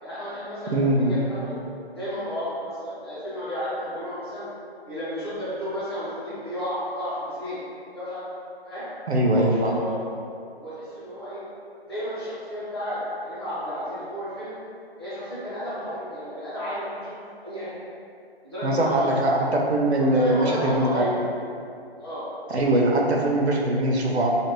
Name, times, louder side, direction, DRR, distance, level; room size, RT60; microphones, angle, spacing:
voice 1, 0.0-1.6 1.9-4.5 4.8-7.6 7.9-8.2 8.6-8.9 9.3-9.9 10.5-11.4 11.9-14.5 15.0-17.7 18.4-19.5 20.1-21.1 22.0-22.3, equal, 25° left, -13 dB, 1.0 m, -32 dB
voice 2, 0.7-1.2 9.1-9.7 18.6-21.0 22.5-24.3, right 1 dB, 80° right, -1 dB, 0.6 m, -22 dB
2.7 x 2.5 x 3.0 m, 2.4 s
figure-of-eight pair, 160°, 32 cm